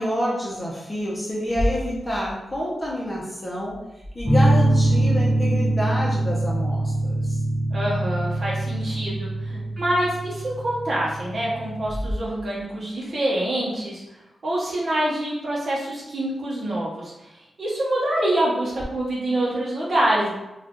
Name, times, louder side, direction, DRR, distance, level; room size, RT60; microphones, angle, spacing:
voice 1, 0.0-3.8 4.1-7.4 9.5-9.7, equal, 20° left, -5 dB, 0.7 m, -28 dB
sound 1, 1.4-4.9 9.4-9.5 10.4-10.5 11.8-13.1 18.7-18.8, equal, 20° right, 0.6 m, -33 dB
sound 2, 4.2-11.9, right 1 dB, ahead, 1.1 m, -23 dB
voice 2, 7.7-14.0 14.4-20.3, right 1 dB, 50° right, -6 dB, 1.0 m, -26 dB
2.7 x 2.4 x 3.6 m, 0.94 s
wide cardioid pair, 105°, 0 cm